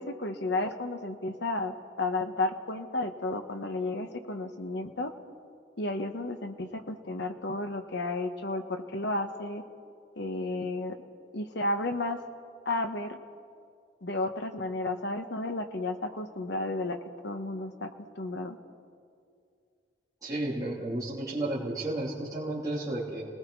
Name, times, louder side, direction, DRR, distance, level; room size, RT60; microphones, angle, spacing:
voice 1, 0.0-5.1 5.8-9.6 10.2-11.0 11.3-12.2 12.6-13.2 14.0-17.0 17.2-18.6, left 2 dB, 65° left, 6 dB, 1.4 m, -32 dB
voice 2, 20.2-23.2, right 1 dB, 20° right, -9 dB, 3.1 m, -32 dB
29.0 x 19.5 x 4.8 m, 2.3 s
head